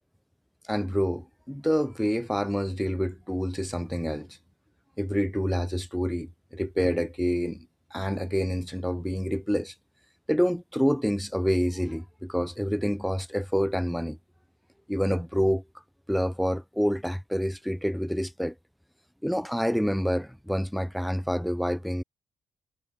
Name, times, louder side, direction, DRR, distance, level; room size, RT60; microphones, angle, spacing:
voice 1, 0.7-4.3 5.0-7.7 7.9-9.7 10.3-14.2 14.9-15.6 16.1-18.5 19.2-22.0, equal, ahead, 2.8 m, -27 dB
cardioid pair, 90°, 0 cm